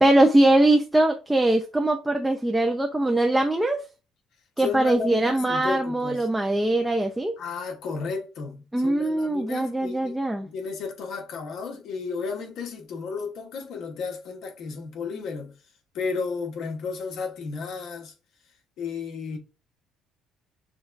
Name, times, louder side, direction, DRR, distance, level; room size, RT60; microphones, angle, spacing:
voice 1, 0.0-3.8 4.6-7.3 8.7-10.5, right 1 dB, 10° right, 0.4 m, -21 dB
voice 2, 4.6-6.3 7.4-15.5 15.9-18.1 18.8-19.4, left 5 dB, 60° left, 1.0 m, -33 dB
6.3 x 2.3 x 2.5 m
cardioid pair, 130°, 0 cm